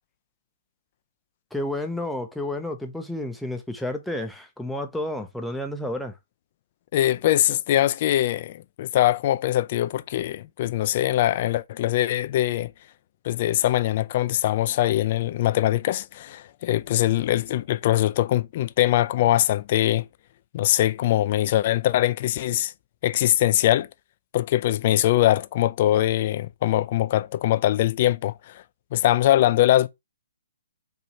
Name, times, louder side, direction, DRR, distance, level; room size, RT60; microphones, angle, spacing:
voice 1, 1.5-6.1, left 1 dB, ahead, 0.7 m, -31 dB
voice 2, 6.9-12.7 13.2-20.1 20.5-22.7 23.0-23.9 24.3-28.6 28.9-29.9, left 13 dB, 45° left, 0.4 m, -22 dB
4.5 x 2.8 x 4.1 m
hypercardioid pair, 135°, 0 cm